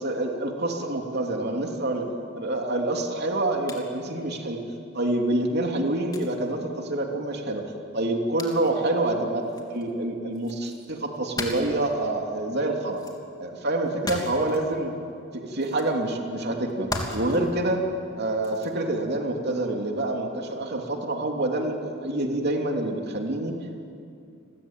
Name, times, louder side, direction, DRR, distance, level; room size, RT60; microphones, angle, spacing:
voice 1, 0.0-4.7 4.9-7.6 7.9-13.0 13.4-14.9 15.3-17.8 18.2-23.5, right 2 dB, 55° right, 2 dB, 3.1 m, -27 dB
sound 1, 3.7-3.8 5.4-5.5 6.1-6.3 8.4-8.7 9.4-9.9 10.3-11.9 12.9-13.2 13.8-14.6 15.6-15.9 16.7-17.5 18.4-18.7 19.3-19.5, left 2 dB, 20° left, 3.2 m, -36 dB
30.0 x 21.5 x 9.1 m, 2.5 s
head